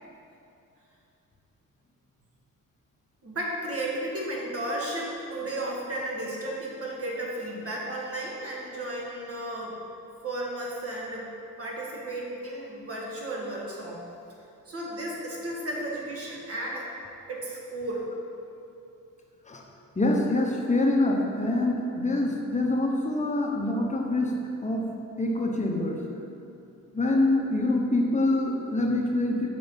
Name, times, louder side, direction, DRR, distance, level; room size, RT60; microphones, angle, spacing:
voice 1, 3.2-9.8 10.2-11.3 11.6-14.0 14.7-16.9 17.3-18.1, right 1 dB, 45° right, -3 dB, 1.7 m, -34 dB
voice 2, 19.9-24.3 24.6-24.9 25.2-26.0 26.9-29.5, left 2 dB, 20° left, 0 dB, 1.0 m, -25 dB
6.2 x 4.7 x 5.3 m, 2.7 s
cardioid pair, 85°, 34 cm